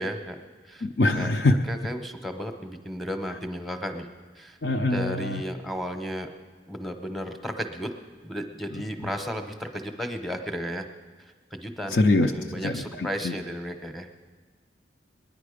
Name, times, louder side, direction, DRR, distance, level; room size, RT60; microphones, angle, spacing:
voice 1, 0.0-0.9 1.2-1.3 1.6-4.1 4.3-4.6 4.8-6.3 6.7-7.9 8.2-10.9 11.2-12.0 12.3-14.1, equal, ahead, 6 dB, 0.8 m, -34 dB
voice 2, 0.8-1.6 4.6-5.4 11.9-12.3 12.6-13.3, left 2 dB, 60° left, 3 dB, 0.6 m, -23 dB
21.0 x 10.0 x 5.0 m, 1.5 s
head